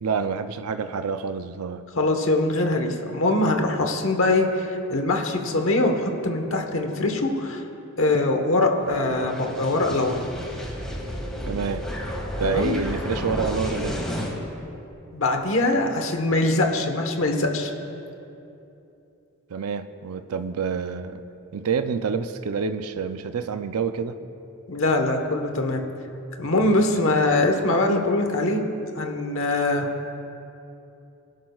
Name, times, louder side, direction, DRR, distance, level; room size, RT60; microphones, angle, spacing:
voice 1, 0.0-1.8 11.5-11.8 12.4-14.0 19.5-21.2 21.5-24.2 26.6-26.9, right 5 dB, 80° right, 9 dB, 0.5 m, -28 dB
voice 2, 2.0-4.6 4.9-7.6 8.0-10.2 12.4-12.8 15.1-17.7 24.7-25.8 26.4-28.6 29.0-29.9, left 2 dB, 60° left, 4 dB, 1.2 m, -22 dB
sound 1, 8.8-14.3, equal, 5° left, 1.8 m, -32 dB
22.0 x 12.0 x 2.4 m, 2.8 s
head